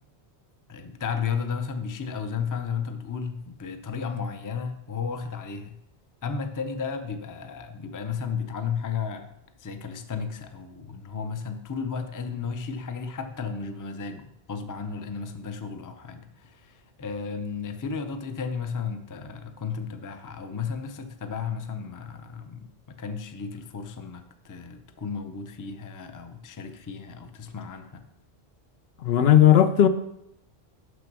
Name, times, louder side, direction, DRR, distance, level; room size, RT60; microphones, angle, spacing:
voice 1, 0.7-5.8 6.2-28.0, left 6 dB, 25° left, 0.5 m, -34 dB
voice 2, 29.0-29.9, left 10 dB, 70° left, 0.9 m, -16 dB
6.3 x 6.1 x 6.1 m
omnidirectional pair, 1.1 m